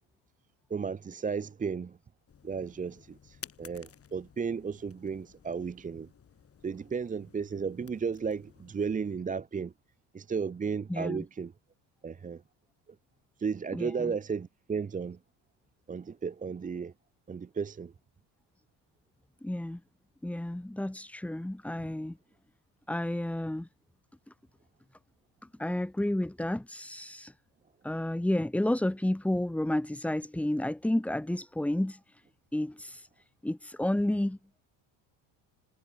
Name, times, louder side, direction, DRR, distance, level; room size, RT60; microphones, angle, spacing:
voice 1, 0.7-2.0 2.4-6.1 6.6-9.7 10.1-11.5 12.0-12.4 12.9-13.0 13.4-15.2 15.9-16.9 17.3-17.9, right 5 dB, 15° right, 0.8 m, -34 dB
sound 1, 2.3-9.2, left 7 dB, 30° left, 4.6 m, -54 dB
voice 2, 10.9-11.2 13.7-14.1 19.4-19.8 20.2-22.2 22.9-23.7 25.6-27.3 27.8-32.2 32.5-33.1 33.4-34.4, left 1 dB, 5° left, 1.2 m, -31 dB
cardioid pair, 145°, 47 cm